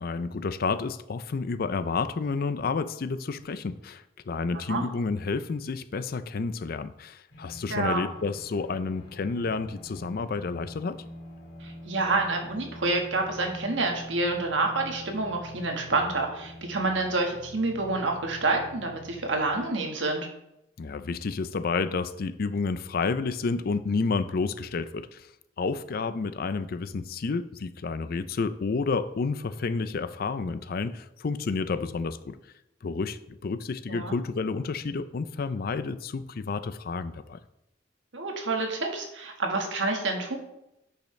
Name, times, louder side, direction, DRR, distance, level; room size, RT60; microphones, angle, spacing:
voice 1, 0.0-11.0 20.8-25.3 25.6-32.4 32.8-37.4, left 4 dB, 50° left, 13 dB, 0.4 m, -30 dB
sound 1, 7.3-19.7, left 1 dB, 75° left, 1.8 m, -45 dB
voice 2, 7.7-8.0 11.6-20.3 33.9-34.1 38.1-40.4, right 3 dB, 80° right, 2 dB, 1.5 m, -28 dB
10.5 x 5.5 x 3.2 m, 0.87 s
head